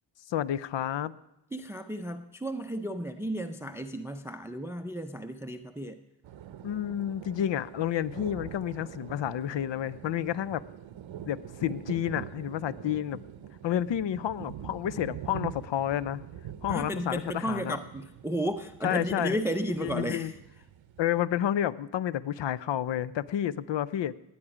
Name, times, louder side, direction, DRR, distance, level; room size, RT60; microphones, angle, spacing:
voice 1, 0.3-1.1 6.6-10.6 11.3-13.2 13.6-16.2 16.6-17.8 18.8-19.4 19.8-20.3 21.0-24.2, left 11 dB, 65° left, 18 dB, 0.6 m, -30 dB
voice 2, 1.5-6.0 16.7-20.3, right 1 dB, 5° right, 10 dB, 0.5 m, -33 dB
sound 1, 6.2-21.2, right 10 dB, 75° right, 0.7 m, -44 dB
18.0 x 8.7 x 5.0 m, 0.87 s
cardioid pair, 75°, 47 cm